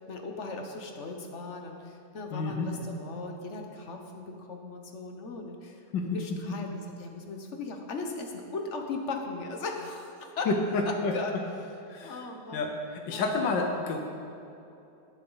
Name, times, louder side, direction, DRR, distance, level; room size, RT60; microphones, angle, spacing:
voice 1, 0.1-5.8 6.1-10.1 10.4-10.5 10.8-11.4 12.0-12.7 13.1-13.4, left 3 dB, 45° left, 3 dB, 1.3 m, -38 dB
voice 2, 2.3-3.0 5.9-6.2 6.5-6.6 10.5-11.1 11.9-12.1 12.5-14.0, left 3 dB, 90° left, 2 dB, 1.6 m, -29 dB
20.0 x 7.4 x 4.0 m, 2.8 s
omnidirectional pair, 1.9 m